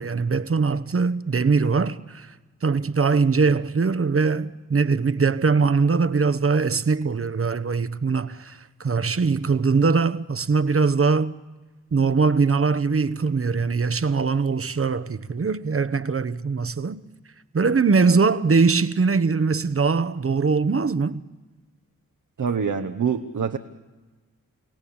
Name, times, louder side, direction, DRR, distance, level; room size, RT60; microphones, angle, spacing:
voice 1, 0.0-2.3 2.6-11.3 11.9-17.0 17.5-21.2, right 4 dB, 40° right, 1.1 m, -22 dB
voice 2, 22.4-23.6, right 6 dB, 60° right, 1.2 m, -25 dB
29.5 x 17.5 x 8.8 m
cardioid pair, 45°, 34 cm